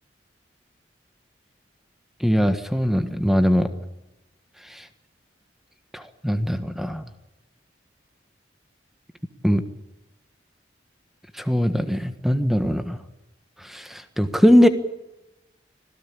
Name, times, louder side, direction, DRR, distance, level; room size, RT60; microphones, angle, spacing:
voice 1, 2.2-3.7 4.7-4.8 5.9-7.0 9.4-9.6 11.4-13.0 13.6-14.7, equal, ahead, 9 dB, 1.5 m, -21 dB
25.5 x 16.5 x 8.6 m, 0.99 s
head